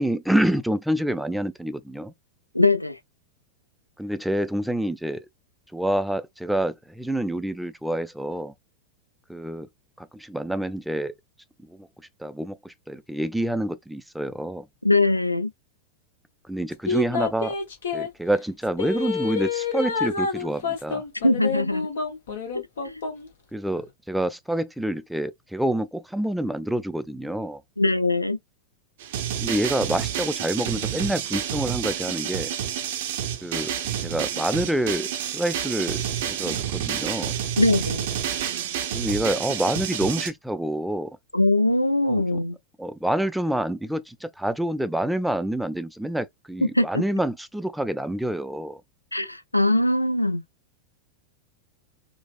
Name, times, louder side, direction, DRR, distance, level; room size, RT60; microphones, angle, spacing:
voice 1, 0.0-2.1 4.0-5.3 5.7-8.5 9.3-9.7 10.0-11.1 11.7-11.9 12.2-14.7 16.5-17.6 17.9-21.0 23.5-27.6 29.4-32.5 33.4-33.7 34.0-37.4 38.9-41.2 42.0-42.4 42.8-48.8, right 1 dB, ahead, 0.3 m, -27 dB
voice 2, 2.5-3.0 14.8-15.5 21.2-21.9 22.5-23.0 27.8-28.4 37.6-38.0 41.3-42.6 46.6-47.0 49.1-50.4, left 2 dB, 85° left, 0.3 m, -22 dB
sound 1, 16.9-18.1 18.8-23.3 23.7-23.8, left 5 dB, 60° left, 0.9 m, -28 dB
sound 2, 29.0-40.3, right 9 dB, 55° right, 0.5 m, -29 dB
3.9 x 2.1 x 2.4 m
figure-of-eight pair, 90°, 0 cm